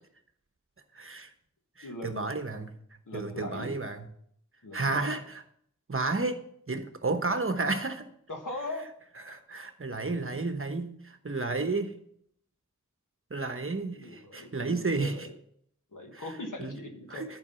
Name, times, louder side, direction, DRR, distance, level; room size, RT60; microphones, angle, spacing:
voice 1, 0.9-1.3 1.8-2.7 3.1-4.1 4.7-5.4 5.9-8.1 9.3-11.9 13.3-15.1 16.1-16.3 16.6-16.8 17.1-17.4, right 3 dB, 45° right, 8 dB, 1.0 m, -32 dB
voice 2, 1.8-2.3 3.1-3.7 4.6-5.2 8.3-8.9 13.9-15.3 15.9-17.2, left 2 dB, 85° left, 3 dB, 1.6 m, -40 dB
11.0 x 4.9 x 5.6 m, 0.67 s
wide cardioid pair, 55°, 31 cm